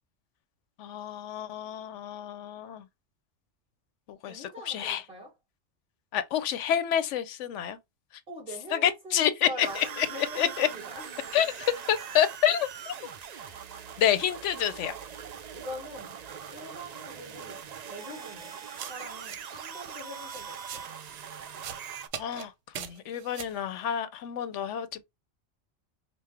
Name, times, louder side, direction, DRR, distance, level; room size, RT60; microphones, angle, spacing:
voice 1, 0.8-2.8 4.1-4.4 4.7-5.0 6.1-7.8 8.8-10.1 10.4-10.7 11.3-11.5 11.9-12.9 14.0-14.9 22.2-22.5 22.8-25.0, left 10 dB, 75° left, 0.9 m, -28 dB
voice 2, 4.3-5.3 8.3-11.3 13.3-13.6 15.5-16.2 16.5-18.6 18.9-20.9, equal, 35° right, 2.4 m, -43 dB
sound 1, 9.6-22.1, right 7 dB, 70° right, 0.4 m, -42 dB
sound 2, 18.8-19.7 20.0-21.2 21.6-22.5 22.7-23.6, right 9 dB, 85° right, 1.0 m, -41 dB
5.3 x 2.0 x 3.3 m
omnidirectional pair, 1.3 m